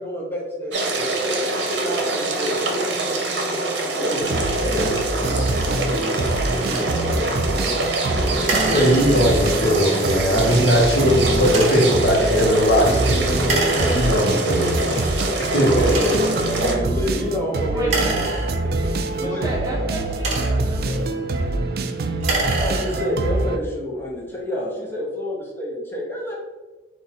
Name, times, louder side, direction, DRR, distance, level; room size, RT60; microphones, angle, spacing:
voice 1, 0.0-1.4 1.8-3.0 3.7-7.8 8.1-9.4 9.7-10.0 11.5-11.7 14.9-15.0 15.4-18.2 18.6-18.9 19.2-19.5 22.4-26.3, equal, 10° left, -3 dB, 0.8 m, -29 dB
sound 1, 0.7-16.7, right 2 dB, 80° right, 0.7 m, -25 dB
sound 2, 4.2-23.6, right 2 dB, 55° right, 0.3 m, -25 dB
sound 3, 6.7-6.9 8.4-9.5 11.4-12.0 13.4-14.4 15.1-15.2 15.8-16.5 17.8-19.0 19.9-20.8 22.1-23.2, right 3 dB, 40° right, 1.0 m, -27 dB
voice 2, 8.7-15.1 15.4-16.2, equal, 70° left, -1 dB, 0.9 m, -19 dB
voice 3, 17.7-18.2 19.2-21.3, right 2 dB, 20° right, -4 dB, 0.9 m, -31 dB
4.1 x 2.4 x 4.1 m, 1.2 s
head